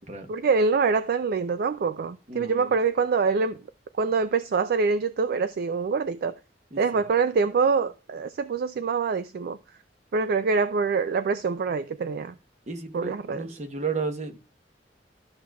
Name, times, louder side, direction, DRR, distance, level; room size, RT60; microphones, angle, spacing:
voice 1, 0.3-3.5 4.0-6.4 6.8-9.6 10.1-12.3 12.9-13.4, right 5 dB, 60° right, 0.4 m, -25 dB
voice 2, 2.3-2.7 6.7-6.8 12.7-14.4, right 4 dB, 40° right, 1.0 m, -33 dB
12.5 x 6.2 x 2.3 m
head